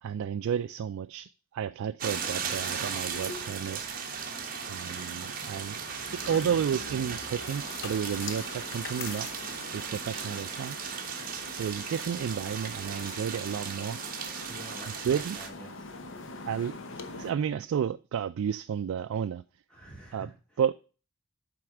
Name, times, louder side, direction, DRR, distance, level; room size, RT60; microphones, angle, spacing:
voice 1, 0.0-3.8 4.7-5.8 6.1-9.3 9.7-10.8 11.5-14.0 15.0-15.4 16.5-16.8 17.2-19.4 20.1-20.3 20.6-20.7, right 8 dB, 85° right, 0.3 m, -31 dB
sound 1, 2.0-15.5, right 6 dB, 45° right, 1.1 m, -37 dB
sound 2, 3.1-17.3, left 4 dB, 65° left, 0.8 m, -44 dB
voice 2, 14.5-15.9 19.7-20.6, right 1 dB, 5° left, 2.2 m, -48 dB
7.8 x 4.2 x 4.8 m
head